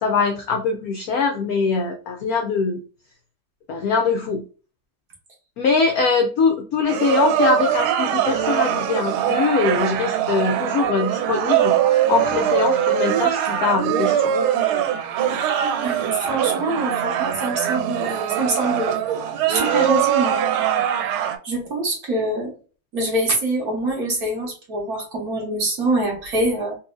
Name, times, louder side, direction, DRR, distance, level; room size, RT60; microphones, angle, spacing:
voice 1, 0.0-2.8 3.7-4.4 5.6-11.7 12.1-14.3, left 4 dB, 80° left, 4 dB, 0.8 m, -22 dB
sound 1, 6.9-21.4, right 10 dB, 90° right, 1.4 m, -22 dB
voice 2, 15.8-20.4 21.4-22.6 22.9-26.8, right 2 dB, 50° right, -1 dB, 1.4 m, -25 dB
4.1 x 2.6 x 2.5 m, 0.37 s
omnidirectional pair, 2.2 m